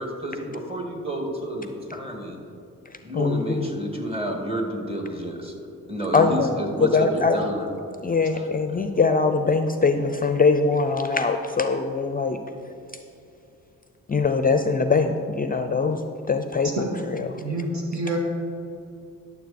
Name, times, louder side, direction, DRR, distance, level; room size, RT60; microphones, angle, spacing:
voice 1, 0.0-2.4 3.0-5.5 5.9-7.7 8.3-8.5, equal, 15° right, 1 dB, 2.1 m, -30 dB
voice 2, 3.1-3.7 6.1-6.5 6.8-7.4 8.0-12.4 14.1-16.0 16.3-16.9 17.2-17.3, left 4 dB, 25° left, 8 dB, 0.5 m, -22 dB
voice 3, 17.4-18.2, right 2 dB, 55° right, 0 dB, 2.2 m, -27 dB
11.5 x 7.1 x 4.2 m, 2.7 s
cardioid pair, 75°, 34 cm